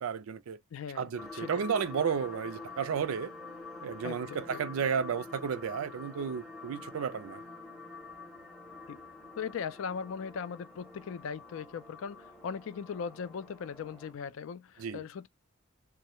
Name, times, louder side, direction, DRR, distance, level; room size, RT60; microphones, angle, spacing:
voice 1, 0.0-0.6 1.0-3.3 3.8-7.4 14.8-15.0, right 7 dB, 90° right, 0.4 m, -33 dB
voice 2, 0.7-1.1 1.3-1.7 4.0-4.6 8.9-9.0 9.4-15.3, left 6 dB, 70° left, 0.3 m, -39 dB
sound 1, 1.2-14.1, left 3 dB, 5° left, 0.6 m, -47 dB
2.3 x 2.0 x 2.8 m
head